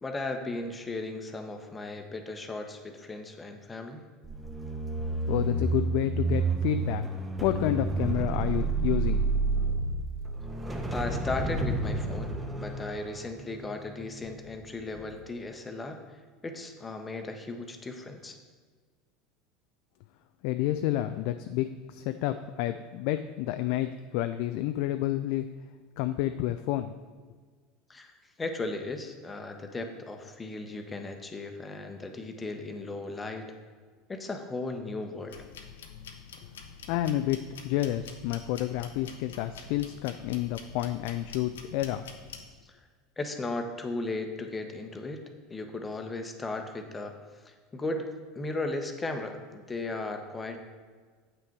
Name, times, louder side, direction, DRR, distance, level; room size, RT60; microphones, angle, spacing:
voice 1, 0.0-4.1 10.9-18.4 27.9-33.5 34.1-35.4 42.6-42.9 43.2-45.2 45.5-48.1 48.3-50.6, left 2 dB, 20° left, 5 dB, 1.0 m, -36 dB
sound 1, 4.2-14.6 14.9-15.2, right 3 dB, 10° right, 1.1 m, -30 dB
voice 2, 5.3-7.1 7.4-9.2 20.4-25.5 26.0-26.9 36.9-42.0, left 13 dB, 60° left, 9 dB, 0.3 m, -30 dB
sound 2, 35.3-42.5, left 6 dB, 75° left, 0.7 m, -46 dB
8.3 x 5.9 x 4.6 m, 1.5 s
hypercardioid pair, 75°, 0 cm